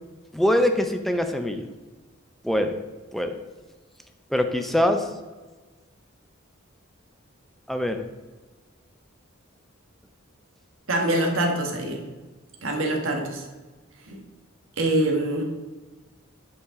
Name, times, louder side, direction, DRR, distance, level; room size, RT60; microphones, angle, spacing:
voice 1, 0.3-1.7 2.4-2.8 3.1-3.3 4.3-5.1 7.7-8.0, left 1 dB, ahead, 6 dB, 0.5 m, -23 dB
voice 2, 10.9-12.0 12.6-13.4 14.1-14.2 14.8-15.4, right 1 dB, 80° right, 2 dB, 1.3 m, -24 dB
8.0 x 5.7 x 3.7 m, 1.3 s
head